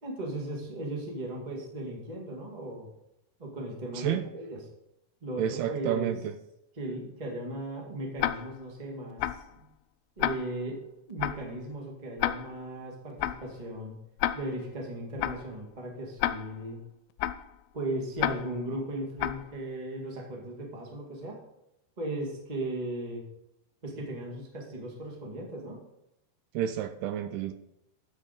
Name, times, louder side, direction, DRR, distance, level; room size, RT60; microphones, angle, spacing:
voice 1, 0.0-2.9 3.4-4.6 5.2-6.1 6.8-9.7 10.2-10.8 11.1-13.9 14.3-16.8 17.7-21.4 22.0-23.2 23.8-25.8, right 1 dB, 20° right, -1 dB, 1.0 m, -37 dB
voice 2, 3.9-4.3 5.4-6.3 26.5-27.5, right 10 dB, 80° right, 9 dB, 2.5 m, -30 dB
Tick-tock, 8.2-8.7 9.2-9.6 10.2-10.7 11.2-11.6 12.2-12.7 13.2-13.6 14.2-14.7 15.2-15.6 16.2-16.7 17.2-17.6 18.2-18.7 19.2-19.6, left 13 dB, 85° left, 2.6 m, -31 dB
9.9 x 7.0 x 5.2 m, 0.84 s
omnidirectional pair, 4.8 m